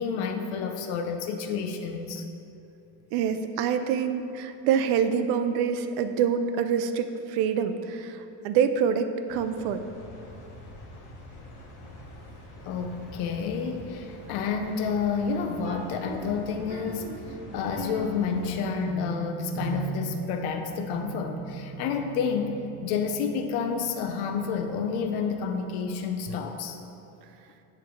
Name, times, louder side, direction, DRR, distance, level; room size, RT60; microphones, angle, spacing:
voice 1, 0.0-2.2 12.7-26.8, left 6 dB, 80° left, 5 dB, 0.6 m, -30 dB
voice 2, 3.1-9.8, right 7 dB, 75° right, 9 dB, 0.5 m, -26 dB
sound 1, 9.3-18.6, left 1 dB, 55° left, 1.1 m, -46 dB
sound 2, 15.6-25.4, right 5 dB, 20° right, 0.4 m, -40 dB
9.2 x 3.3 x 4.4 m, 2.7 s
cardioid pair, 175°, 39 cm